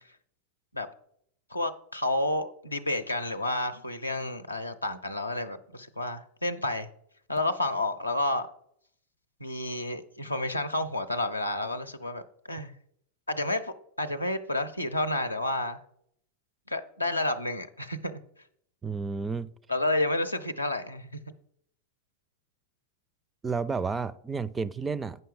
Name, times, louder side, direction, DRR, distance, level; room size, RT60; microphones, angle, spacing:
voice 1, 1.5-6.9 7.3-8.5 9.4-12.2 12.5-12.7 13.3-15.8 16.7-18.2 19.7-21.2, left 1 dB, 85° left, 0.6 m, -30 dB
voice 2, 18.8-19.5 23.4-25.2, right 4 dB, 15° right, 0.4 m, -31 dB
9.3 x 5.5 x 5.4 m
figure-of-eight pair, 90°, 0 cm